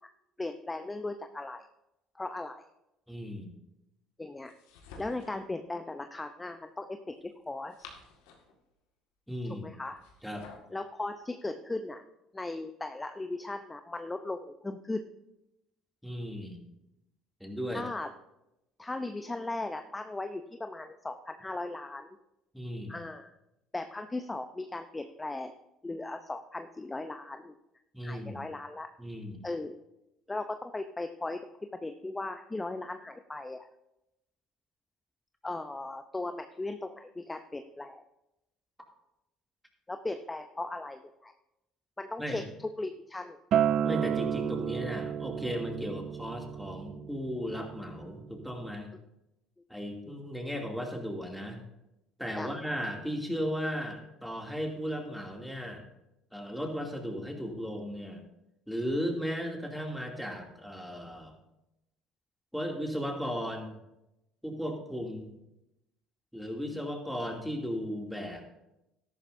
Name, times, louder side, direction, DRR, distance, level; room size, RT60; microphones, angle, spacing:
voice 1, 0.4-1.6 2.1-2.6 4.2-4.5 5.0-7.9 9.6-10.0 10.7-12.0 12.3-15.0 17.7-18.1 18.8-22.2 22.9-23.3 23.7-25.5 25.8-27.5 28.0-28.9 29.4-29.8 30.3-31.4 31.7-33.7 35.4-38.0 39.9-41.3 42.0-42.4 42.8-43.4 52.4-52.5, left 2 dB, 15° left, 7 dB, 0.7 m, -37 dB
voice 2, 3.1-3.5 9.3-9.7 10.2-10.4 16.0-16.6 17.4-17.8 22.5-23.0 27.9-28.4 29.0-29.5 42.2-42.5 43.8-48.9 49.7-51.6 52.2-55.9 56.3-58.2 58.7-61.3 62.5-63.8 64.4-65.4 66.3-68.5, equal, ahead, 1 dB, 2.6 m, -36 dB
sound 1, 4.4-5.5 7.4-8.6 9.8-10.7, left 4 dB, 80° left, 1.8 m, -51 dB
Acoustic guitar, 43.5-48.7, right 9 dB, 60° right, 0.6 m, -32 dB
13.0 x 11.5 x 2.7 m, 0.89 s
hypercardioid pair, 70°, 0 cm